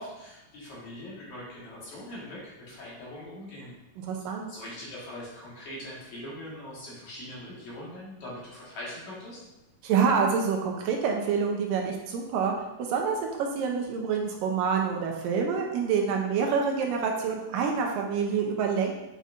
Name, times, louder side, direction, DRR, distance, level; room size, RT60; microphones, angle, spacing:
voice 1, 0.0-3.7 4.5-9.4, left 1 dB, 60° left, -7 dB, 2.9 m, -42 dB
voice 2, 4.0-4.5 9.8-12.5 12.8-18.9, right 6 dB, 80° right, 1 dB, 2.4 m, -27 dB
7.7 x 5.1 x 2.6 m, 0.99 s
omnidirectional pair, 4.0 m